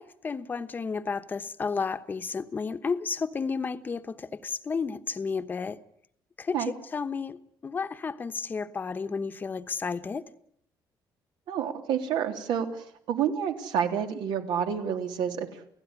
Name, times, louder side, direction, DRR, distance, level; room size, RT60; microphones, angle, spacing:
voice 1, 0.0-5.8 6.4-6.6 6.9-10.2, left 5 dB, 25° left, 1.1 m, -32 dB
voice 2, 11.5-15.7, right 8 dB, 85° right, 3.2 m, -29 dB
29.5 x 16.5 x 9.8 m
cardioid pair, 160°, 8 cm